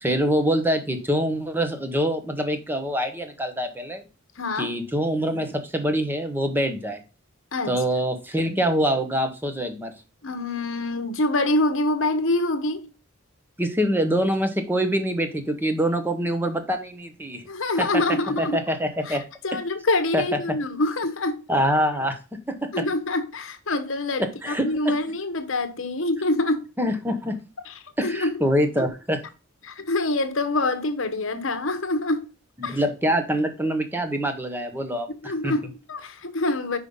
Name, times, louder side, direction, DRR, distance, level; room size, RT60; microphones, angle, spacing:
voice 1, 0.0-4.0 4.6-7.0 7.7-9.9 13.6-17.4 17.8-18.0 18.4-19.2 19.5-19.6 20.1-20.6 21.5-22.2 22.5-22.9 24.2-24.9 26.8-27.4 28.0-29.2 32.6-35.5, equal, 10° right, 0.9 m, -25 dB
voice 2, 4.4-4.7 7.5-7.8 10.2-12.9 17.5-18.6 19.1-19.2 19.4-21.4 22.7-26.6 27.7-27.8 28.0-28.3 29.6-32.2 32.6-32.8 35.2-36.8, left 2 dB, 65° left, 1.0 m, -25 dB
5.5 x 5.0 x 5.4 m
head